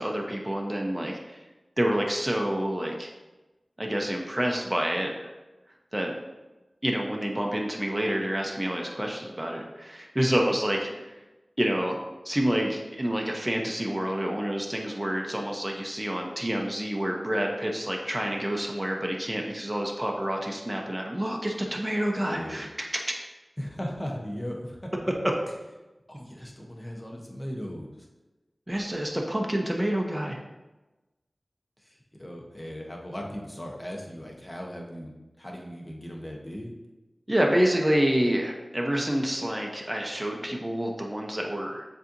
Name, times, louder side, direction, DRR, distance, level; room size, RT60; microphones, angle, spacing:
voice 1, 0.0-1.4 1.8-3.1 3.8-5.3 5.9-6.1 6.8-11.1 11.6-12.0 12.2-23.0 28.7-30.4 37.3-41.9, equal, 20° right, 0 dB, 0.6 m, -28 dB
voice 2, 22.2-22.7 23.6-24.8 26.1-28.1 31.8-35.1 35.4-36.7, equal, 20° left, -1 dB, 0.8 m, -38 dB
7.0 x 2.7 x 2.6 m, 1.1 s
wide cardioid pair, 65°, 0 cm